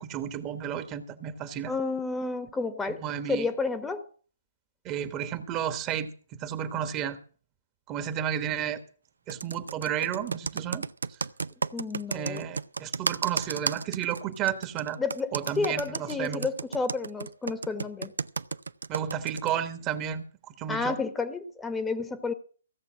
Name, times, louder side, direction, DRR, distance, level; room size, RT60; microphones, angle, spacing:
voice 1, 0.0-1.7 2.9-3.5 4.8-7.2 7.9-8.8 9.3-10.9 12.1-15.0 15.3-16.5 18.9-20.9, right 9 dB, 25° right, 10 dB, 1.2 m, -32 dB
voice 2, 1.7-3.0 3.3-4.1 11.7-12.4 15.0-18.1 20.7-22.3, left 3 dB, 10° left, 9 dB, 1.1 m, -31 dB
Computer keyboard, 9.3-19.5, right 4 dB, 80° right, 0.5 m, -33 dB
16.5 x 6.9 x 7.4 m, 0.41 s
figure-of-eight pair, 135°, 0 cm